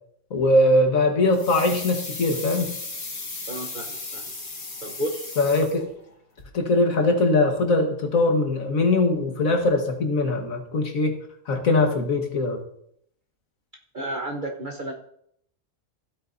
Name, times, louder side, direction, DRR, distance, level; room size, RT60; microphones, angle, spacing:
voice 1, 0.3-2.7 5.4-5.9 6.5-11.2 11.5-12.6, left 2 dB, 85° left, 4 dB, 1.9 m, -21 dB
sound 1, 1.3-6.1 6.4-6.5, left 3 dB, 50° left, 2.1 m, -36 dB
voice 2, 3.5-4.3 4.8-5.3 13.9-14.9, right 1 dB, 40° right, 0 dB, 1.1 m, -32 dB
15.5 x 8.8 x 2.7 m, 0.70 s
omnidirectional pair, 1.4 m